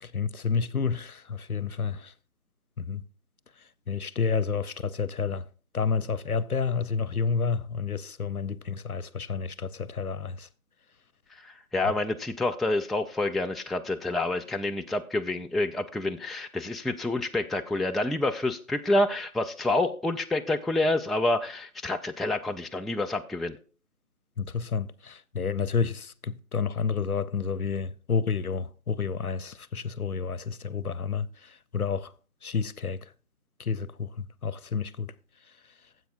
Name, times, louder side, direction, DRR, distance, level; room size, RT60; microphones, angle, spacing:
voice 1, 0.0-2.1 2.8-3.0 3.9-5.4 5.7-10.5 24.4-32.1 32.4-33.0 33.6-35.1, left 5 dB, 75° left, 0.7 m, -30 dB
voice 2, 11.3-23.6, left 2 dB, ahead, 0.4 m, -28 dB
15.0 x 7.8 x 2.5 m
figure-of-eight pair, 175°, 44 cm